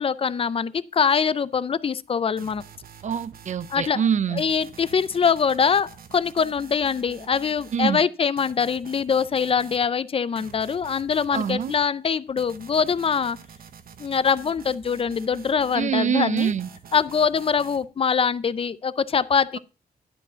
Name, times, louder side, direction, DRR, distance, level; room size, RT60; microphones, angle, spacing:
voice 1, 0.0-2.6 3.7-4.0 4.3-13.4 14.0-16.5 16.9-19.6, left 6 dB, 35° left, 0.4 m, -23 dB
sound 1, 2.4-3.8 4.4-7.9 8.4-9.9 10.4-11.8 12.4-15.9 16.4-17.9, right 7 dB, 65° right, 0.8 m, -46 dB
voice 2, 3.0-4.4 7.7-8.0 11.3-11.7 15.7-16.7, right 7 dB, 50° right, 0.4 m, -24 dB
11.0 x 4.9 x 5.7 m
wide cardioid pair, 165°, 16 cm